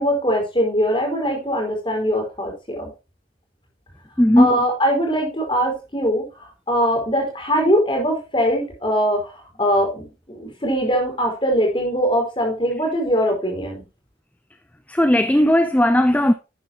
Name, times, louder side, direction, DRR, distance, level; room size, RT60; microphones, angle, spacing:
voice 1, 0.0-2.9 4.4-13.8, equal, 30° left, 5.0 m, -22 dB
voice 2, 4.2-4.5 14.9-16.3, left 1 dB, 10° left, 0.6 m, -16 dB
11.5 x 9.6 x 3.0 m
head